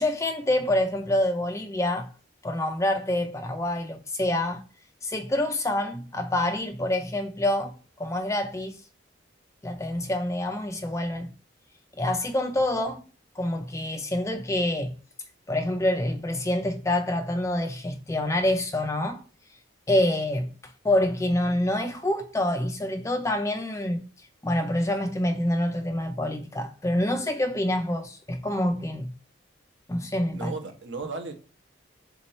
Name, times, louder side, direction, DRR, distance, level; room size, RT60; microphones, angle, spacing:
voice 1, 0.0-2.1 2.4-4.6 5.0-8.8 9.6-11.3 12.0-13.1 13.4-14.9 15.5-19.2 19.9-20.5 20.8-24.1 24.4-29.1 29.9-30.5, left 1 dB, 15° left, 0.4 m, -26 dB
voice 2, 30.3-31.3, right 4 dB, 65° right, 0.8 m, -35 dB
3.7 x 2.9 x 4.1 m
head